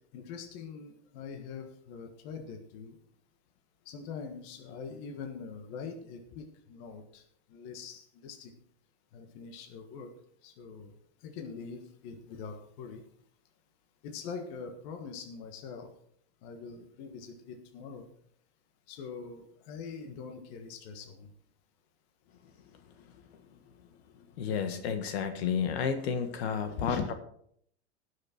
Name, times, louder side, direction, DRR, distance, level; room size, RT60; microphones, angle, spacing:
voice 1, 0.1-2.9 3.8-7.2 7.5-8.5 9.1-10.1 10.4-10.9 11.2-13.0 14.0-15.9 16.4-18.1 18.9-21.3 26.8-27.1, left 5 dB, 40° left, 5 dB, 1.5 m, -43 dB
voice 2, 24.4-27.1, left 7 dB, 65° left, 8 dB, 1.6 m, -31 dB
18.5 x 6.6 x 4.4 m, 0.66 s
supercardioid pair, 160°, 33 cm